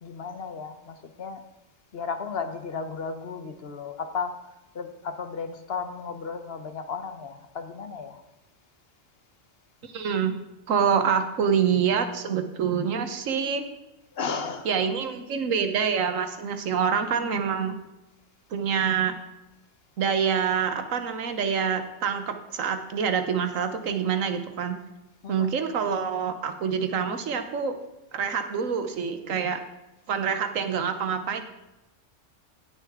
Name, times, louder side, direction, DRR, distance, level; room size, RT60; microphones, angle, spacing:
voice 1, 0.0-1.4 1.9-4.4 4.7-8.2 14.1-14.7 25.2-25.5, left 5 dB, 55° left, 8 dB, 1.0 m, -34 dB
voice 2, 9.8-10.3 10.7-13.7 14.6-17.7 18.5-19.2 20.0-24.8 25.3-27.7 28.1-29.6 30.1-31.4, right 7 dB, 85° right, 8 dB, 1.3 m, -26 dB
17.5 x 6.5 x 3.6 m, 1.0 s
omnidirectional pair, 1.3 m